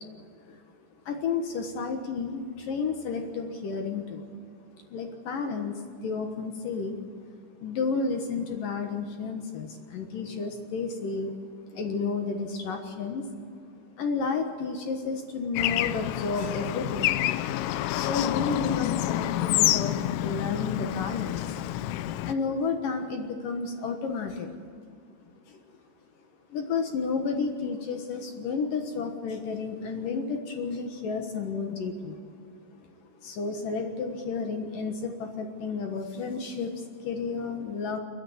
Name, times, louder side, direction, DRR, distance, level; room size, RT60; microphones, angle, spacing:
voice 1, 1.1-4.2 4.9-5.8 6.0-7.0 7.6-11.3 11.7-13.2 14.0-17.2 17.9-21.6 22.2-24.5 25.5-25.6 26.5-32.2 33.2-38.0, left 4 dB, 65° left, 4 dB, 2.2 m, -31 dB
Bird / Traffic noise roadway noise, 15.6-22.3, left 14 dB, 85° left, 3.2 m, -28 dB
29.5 x 10.5 x 9.4 m, 2.2 s
omnidirectional pair, 5.7 m